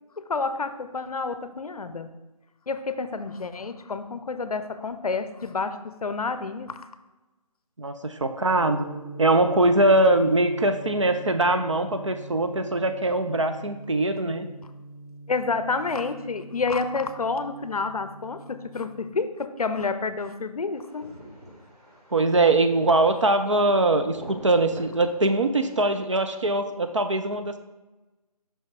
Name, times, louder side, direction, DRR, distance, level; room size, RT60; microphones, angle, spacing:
voice 1, 0.2-2.1 2.7-6.9 15.3-21.1, left 4 dB, 65° left, 11 dB, 0.5 m, -29 dB
voice 2, 7.8-8.8 9.2-14.5 22.1-27.6, right 2 dB, 50° right, 8 dB, 0.4 m, -22 dB
Gong, 8.5-19.1, right 2 dB, 25° left, 0.9 m, -42 dB
sound 1, 20.7-26.6, equal, 75° right, 2.1 m, -46 dB
5.6 x 5.5 x 3.2 m, 1.1 s
figure-of-eight pair, 175°, 20 cm